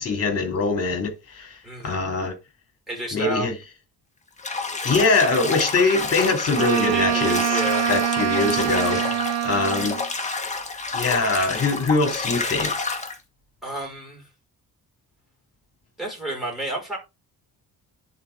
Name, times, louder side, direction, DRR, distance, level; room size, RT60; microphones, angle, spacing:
voice 1, 0.0-1.5 1.8-2.3 3.1-3.6 4.8-7.6 7.9-9.0 9.4-10.0 10.9-12.7, left 3 dB, 40° left, 3.0 m, -23 dB
voice 2, 1.6-2.0 2.9-3.5 6.8-7.9 8.9-9.3 13.6-14.3 16.0-17.0, right 1 dB, ahead, 5.4 m, -31 dB
Bathtub (filling or washing), 4.4-13.2, left 3 dB, 20° left, 1.6 m, -29 dB
Wind instrument woodwind instrument, 6.5-10.1, right 11 dB, 45° right, 0.8 m, -24 dB
10.0 x 4.4 x 3.7 m
cardioid pair, 115°, 37 cm